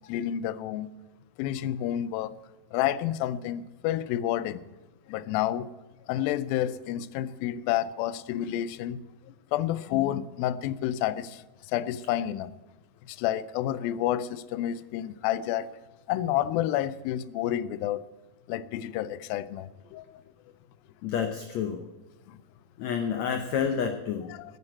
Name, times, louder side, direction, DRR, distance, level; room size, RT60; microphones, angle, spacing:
voice 1, 0.1-0.9 1.4-2.4 2.7-4.6 5.1-5.7 6.1-12.5 13.0-15.8 16.1-18.0 18.5-20.2 24.3-24.6, left 12 dB, 90° left, 17 dB, 2.4 m, -30 dB
voice 2, 21.0-21.8 22.8-24.3, left 7 dB, 75° left, 6 dB, 1.7 m, -29 dB
9.8 x 9.8 x 8.8 m, 1.1 s
omnidirectional pair, 4.1 m